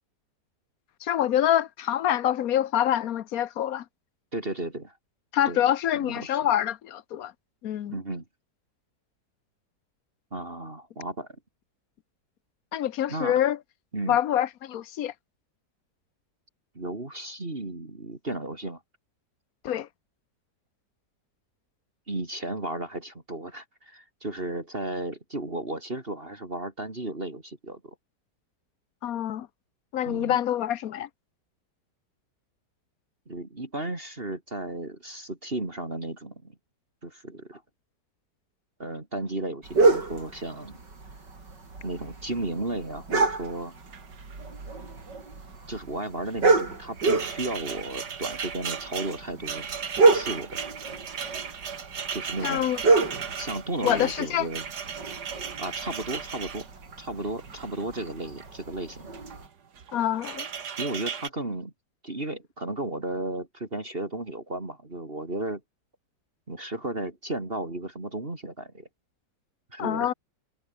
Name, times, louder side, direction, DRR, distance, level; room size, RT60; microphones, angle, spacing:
voice 1, 1.0-3.8 5.3-7.3 7.6-7.9 12.7-13.6 14.1-15.1 19.6-19.9 29.0-29.5 29.9-31.1 52.4-52.8 53.8-54.5 59.9-60.5 69.8-70.1, left 11 dB, 60° left, 1.2 m, -26 dB
voice 2, 4.3-4.9 5.5-5.6 5.9-6.5 7.9-8.2 10.3-11.3 13.1-13.4 13.9-14.2 16.8-18.8 22.1-27.9 30.1-30.4 33.3-36.6 37.0-37.6 38.8-40.8 41.8-43.8 45.7-49.7 50.1-50.6 52.1-52.7 53.4-54.7 55.6-56.7 57.0-59.1 60.8-61.7 62.0-65.6 66.5-68.9 69.7-70.1, right 2 dB, 30° right, 3.7 m, -34 dB
sound 1, 39.6-59.5, right 3 dB, 85° right, 4.9 m, -29 dB
sound 2, 43.4-43.5 43.8-44.6 44.9-45.1 46.3-58.5 59.0-59.5 59.8-61.3, right 7 dB, 70° right, 2.3 m, -37 dB
omnidirectional pair, 1.8 m